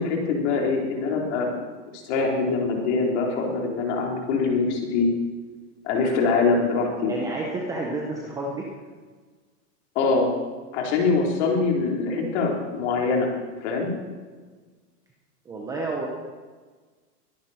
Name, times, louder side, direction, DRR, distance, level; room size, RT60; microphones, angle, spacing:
voice 1, 0.0-1.5 1.9-5.1 5.8-7.1 10.0-10.3 10.7-13.3 13.6-13.9, left 4 dB, 45° left, 0 dB, 3.6 m, -23 dB
voice 2, 7.1-8.7 15.5-16.1, right 2 dB, 5° right, -1 dB, 0.7 m, -30 dB
22.0 x 10.0 x 4.3 m, 1.4 s
hypercardioid pair, 155°, 48 cm